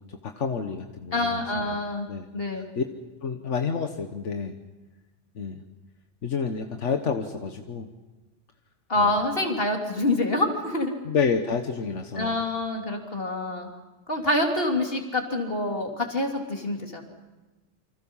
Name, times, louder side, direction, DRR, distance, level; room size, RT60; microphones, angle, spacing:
voice 1, 0.0-1.7 2.1-2.3 2.5-2.8 3.2-4.6 5.3-5.6 6.2-7.9 9.0-9.1 11.0-12.4, left 5 dB, 80° left, 5 dB, 1.6 m, -29 dB
voice 2, 1.1-2.1 2.3-2.7 8.9-10.9 12.2-13.7 14.1-17.0, left 2 dB, 50° left, 1 dB, 3.6 m, -26 dB
28.5 x 25.5 x 5.6 m, 1.2 s
omnidirectional pair, 1.2 m